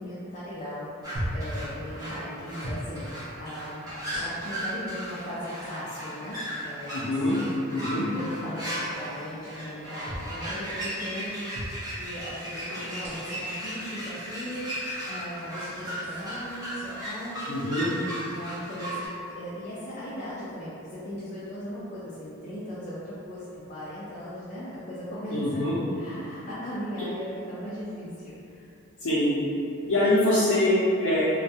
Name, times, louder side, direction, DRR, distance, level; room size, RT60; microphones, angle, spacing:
voice 1, 0.0-3.8 4.2-6.4 6.6-7.1 8.0-17.7 18.3-19.1 19.4-25.6 25.9-28.7, equal, 35° left, -10 dB, 0.3 m, -38 dB
sound 1, 1.0-19.1, equal, 15° right, 0.8 m, -36 dB
sound 2, 1.1-1.5 2.6-2.9 4.1-4.6 5.6-5.7 7.1-7.3 10.0-10.3 11.5-11.8 13.0-13.4 14.5-14.6 16.0-16.2, equal, 45° right, 0.5 m, -36 dB
voice 2, 6.9-7.4 7.7-8.1 17.5-17.9 25.3-25.8 29.0-29.3 29.9-31.3, left 1 dB, 90° left, -11 dB, 0.6 m, -24 dB
2.3 x 2.1 x 2.6 m, 2.6 s
head